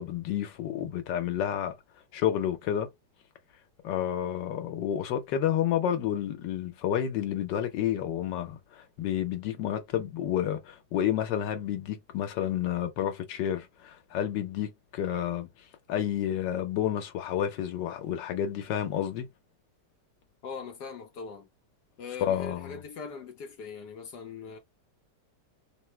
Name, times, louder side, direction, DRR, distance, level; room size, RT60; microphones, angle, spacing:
voice 1, 0.0-1.8 2.1-2.9 3.8-15.5 15.9-19.2 22.2-22.8, left 10 dB, 90° left, 1.5 m, -30 dB
voice 2, 20.4-21.5 22.0-24.6, left 5 dB, 75° left, 1.3 m, -41 dB
3.7 x 2.1 x 4.4 m
omnidirectional pair, 1.9 m